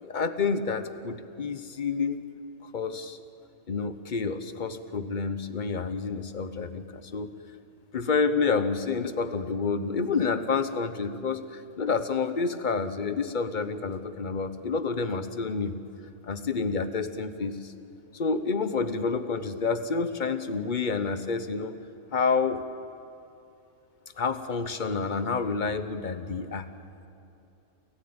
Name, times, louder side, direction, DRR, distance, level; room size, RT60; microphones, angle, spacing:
voice 1, 0.0-2.2 2.6-3.2 3.7-7.3 7.9-15.8 16.2-17.7 18.1-21.7 22.1-22.6 24.2-26.7, left 4 dB, 40° left, 11 dB, 1.0 m, -29 dB
29.0 x 14.0 x 8.8 m, 2.8 s
omnidirectional pair, 1.4 m